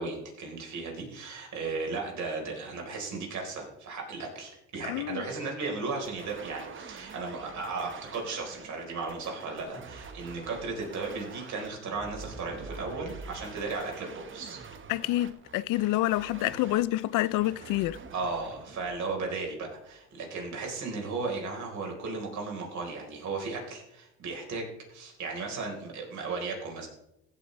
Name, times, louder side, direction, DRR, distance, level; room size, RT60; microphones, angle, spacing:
voice 1, 0.0-14.6 16.4-16.5 18.1-26.9, right 3 dB, 60° right, 4.2 m, -35 dB
voice 2, 4.8-5.2 14.9-18.0, left 16 dB, 75° left, 0.5 m, -28 dB
sound 1, 6.0-19.9, right 5 dB, 40° right, 1.4 m, -46 dB
15.5 x 8.6 x 3.3 m
cardioid pair, 95°, 32 cm